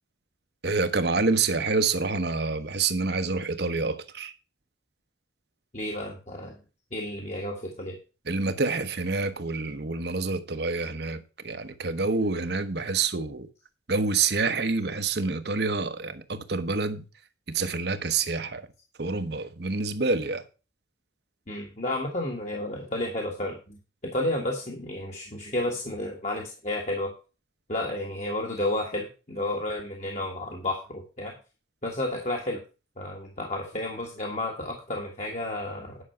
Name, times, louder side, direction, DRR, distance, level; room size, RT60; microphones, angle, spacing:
voice 1, 0.6-4.3 8.3-13.5 13.9-17.0 17.5-18.7 19.0-20.4, right 4 dB, 60° right, 1.0 m, -27 dB
voice 2, 5.7-6.6 6.9-8.0 21.5-27.1 27.7-31.3 31.8-32.6 33.0-36.0, left 1 dB, 40° left, 1.7 m, -31 dB
10.0 x 6.1 x 5.7 m
head